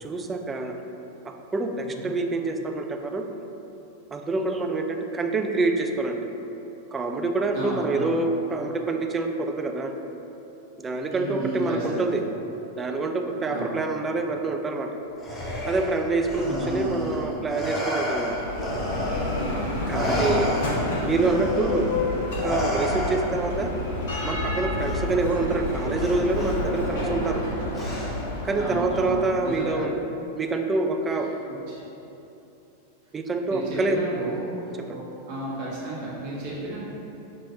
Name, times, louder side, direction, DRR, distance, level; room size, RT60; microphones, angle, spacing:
voice 1, 0.0-0.7 1.5-3.2 4.1-6.2 6.9-9.9 10.8-12.1 12.8-14.9 15.6-18.3 19.9-20.5 21.0-21.9 22.4-23.8 24.2-27.4 28.4-29.9 30.4-31.3 33.1-34.0 34.8-35.0, right 3 dB, 20° right, 4 dB, 0.3 m, -26 dB
voice 2, 7.5-8.2 11.1-12.1 13.5-13.7 16.4-17.2 19.8-20.4 28.5-29.8 31.7-31.8 33.5-36.8, right 1 dB, 45° right, -7 dB, 1.3 m, -33 dB
Respiratory sounds, 15.2-19.5 19.9-23.5 24.8-25.0 26.0-26.5 27.7-28.4, equal, 15° left, 0.8 m, -30 dB
Bell, 18.0-29.8, left 2 dB, 55° left, 0.8 m, -29 dB
5.6 x 3.0 x 2.7 m, 3.0 s
figure-of-eight pair, 90°, 0 cm